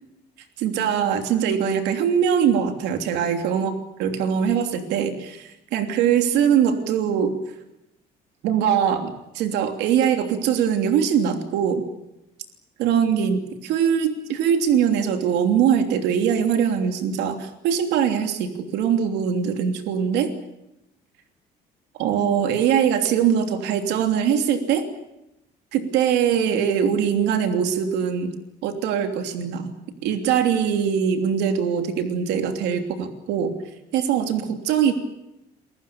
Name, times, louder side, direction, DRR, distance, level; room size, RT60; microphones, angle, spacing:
voice 1, 0.6-3.7 4.0-7.4 8.4-11.8 12.8-20.3 22.0-24.9 25.7-28.3 28.6-29.7 30.0-33.5 33.9-34.9, right 8 dB, 90° right, 6 dB, 3.1 m, -22 dB
28.5 x 23.0 x 7.0 m, 0.89 s
cardioid pair, 110°, 17 cm